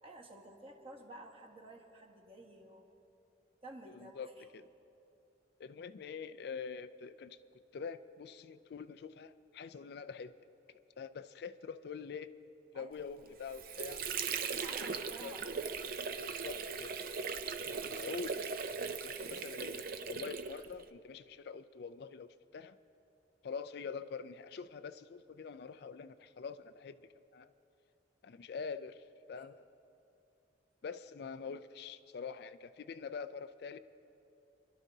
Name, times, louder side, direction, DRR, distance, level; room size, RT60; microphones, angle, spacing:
voice 1, 0.0-2.9 3.6-4.4 12.7-13.0 14.4-15.8 29.4-29.5, right 1 dB, 30° right, -1 dB, 1.5 m, -52 dB
voice 2, 3.9-4.3 4.5-4.7 5.6-7.4 7.7-10.4 11.0-12.3 12.7-14.0 14.3-14.8 15.2-15.4 16.2-16.9 17.7-18.4 18.6-22.8 23.4-27.5 28.2-29.6 30.8-33.8, left 5 dB, 60° left, 11 dB, 0.4 m, -45 dB
Water / Sink (filling or washing), 13.2-20.9, right 5 dB, 50° right, 0.5 m, -39 dB
27.0 x 12.0 x 2.7 m, 3.0 s
head